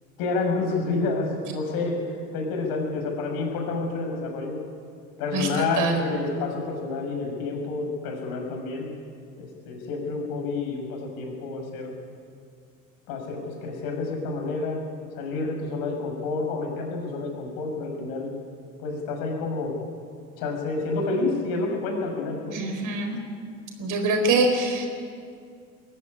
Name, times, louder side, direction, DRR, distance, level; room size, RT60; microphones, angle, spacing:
voice 1, 0.2-4.6 5.2-8.9 9.4-11.9 13.1-14.8 15.2-18.3 18.8-19.7 20.4-22.6, left 3 dB, 60° left, 2 dB, 6.3 m, -29 dB
voice 2, 5.3-6.0 22.5-23.2 23.8-24.9, right 3 dB, 50° right, 5 dB, 4.6 m, -24 dB
21.5 x 14.5 x 9.9 m, 2.3 s
hypercardioid pair, 70°, 41 cm